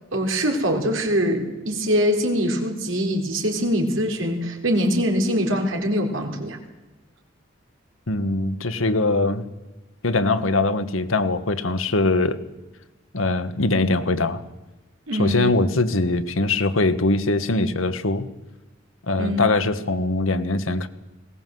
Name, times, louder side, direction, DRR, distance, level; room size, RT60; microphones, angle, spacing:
voice 1, 0.1-6.6 15.1-15.4 19.2-19.5, equal, 80° right, 3 dB, 3.9 m, -23 dB
voice 2, 8.1-9.4 10.0-12.4 13.1-14.4 15.2-18.3 19.1-20.9, left 2 dB, 90° left, 11 dB, 1.5 m, -22 dB
20.5 x 18.5 x 7.8 m, 1.1 s
head